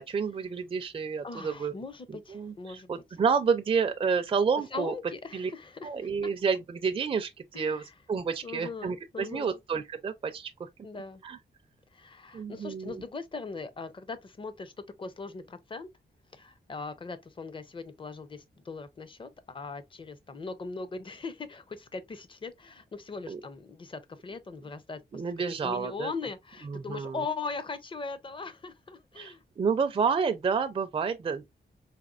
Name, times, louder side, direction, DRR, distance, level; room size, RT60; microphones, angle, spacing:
voice 1, 0.0-1.7 2.3-4.9 5.3-5.5 5.8-10.7 11.2-11.4 12.3-13.0 23.3-23.4 25.1-26.1 26.7-27.2 29.2-31.6, right 5 dB, 30° right, 0.4 m, -30 dB
voice 2, 1.2-3.0 4.5-6.1 7.5-7.9 8.4-9.6 10.8-11.2 11.9-14.7 15.0-15.9 16.3-25.2 25.6-29.4, left 4 dB, 30° left, 0.6 m, -40 dB
4.1 x 2.9 x 2.4 m
wide cardioid pair, 145°, 18 cm